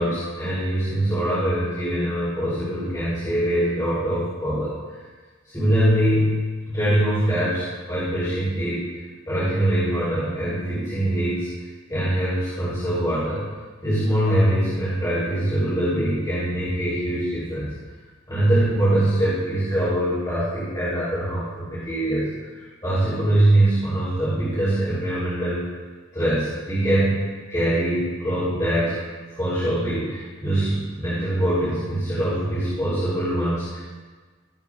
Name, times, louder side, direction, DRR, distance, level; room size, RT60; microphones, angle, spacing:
voice 1, 0.0-4.7 5.5-8.9 9.3-11.5 11.9-13.5 13.8-17.7 18.3-25.6 26.1-29.0 29.3-33.8, right 1 dB, 15° left, -12 dB, 3.1 m, -23 dB
17.0 x 7.6 x 2.4 m, 1.4 s
head